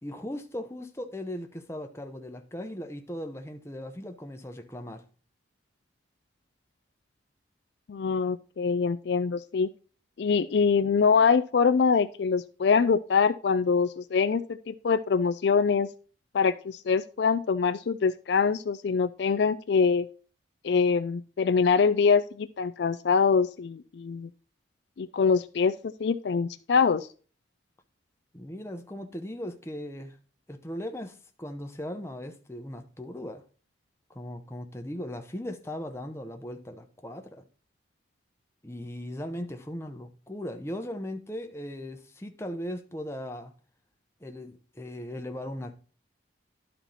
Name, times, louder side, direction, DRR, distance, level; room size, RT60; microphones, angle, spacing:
voice 1, 0.0-5.0 28.3-30.2 30.5-33.4 34.1-37.4 38.6-43.5 44.2-45.8, left 1 dB, 15° left, 0.8 m, -38 dB
voice 2, 7.9-9.7 10.2-15.9 16.3-20.1 20.6-24.3 25.0-27.1, left 5 dB, 60° left, 0.4 m, -24 dB
11.5 x 4.4 x 4.0 m
head